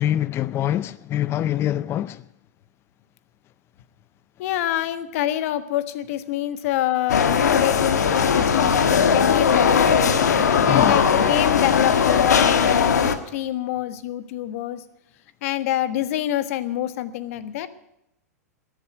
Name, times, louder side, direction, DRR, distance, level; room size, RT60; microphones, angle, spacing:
voice 1, 0.0-2.2 10.7-11.0, left 12 dB, 30° left, 0.5 m, -24 dB
voice 2, 4.4-10.2 10.7-14.8 15.4-17.7, left 13 dB, 55° left, 1.4 m, -26 dB
sound 1, 7.1-13.2, left 6 dB, 80° left, 1.5 m, -19 dB
13.0 x 11.0 x 9.3 m
hypercardioid pair, 110°, 9 cm